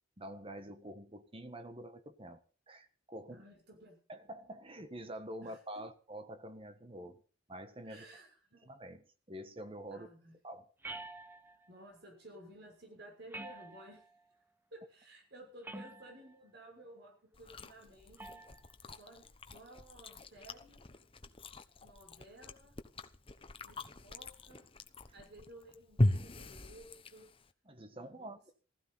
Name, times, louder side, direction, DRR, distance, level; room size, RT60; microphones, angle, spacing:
voice 1, 0.2-2.4 2.7-3.4 4.1-7.2 7.5-8.0 8.6-10.1 10.4-10.7 27.7-28.5, right 1 dB, 30° right, 1.5 m, -47 dB
voice 2, 3.3-4.0 5.4-5.8 7.8-8.7 9.9-10.3 11.7-14.1 14.7-18.4 19.0-20.8 21.8-22.7 23.6-24.7 25.1-27.3 28.1-28.5, right 1 dB, 55° right, 6.4 m, -55 dB
sound 1, 10.8-11.7 13.3-14.2 15.6-16.3 18.2-18.6, right 2 dB, 10° right, 1.1 m, -47 dB
Chewing mastication, 17.3-27.5, left 1 dB, 30° left, 1.1 m, -39 dB
16.0 x 14.5 x 5.7 m
head